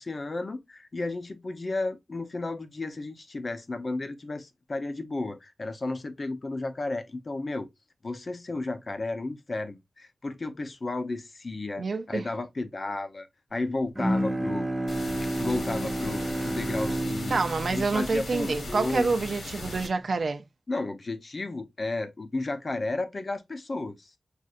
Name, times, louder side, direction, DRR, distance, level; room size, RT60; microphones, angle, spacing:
voice 1, 0.0-7.7 8.0-14.6 15.4-17.4 17.7-19.1 20.7-24.1, left 2 dB, 45° left, 0.7 m, -33 dB
voice 2, 11.8-12.3 17.3-20.4, right 4 dB, 65° right, 0.4 m, -27 dB
Bowed string instrument, 13.9-19.4, right 1 dB, 15° right, 0.6 m, -31 dB
sound 1, 14.9-19.9, left 2 dB, 85° left, 1.4 m, -38 dB
6.4 x 2.6 x 2.4 m
wide cardioid pair, 75°, 0 cm